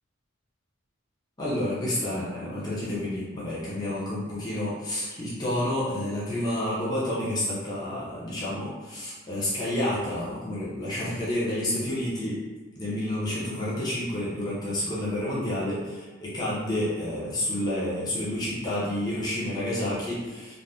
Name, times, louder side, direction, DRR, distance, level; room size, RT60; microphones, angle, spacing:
voice 1, 1.4-12.4 12.8-20.6, left 1 dB, 20° left, -8 dB, 0.6 m, -29 dB
2.6 x 2.1 x 3.3 m, 1.3 s
head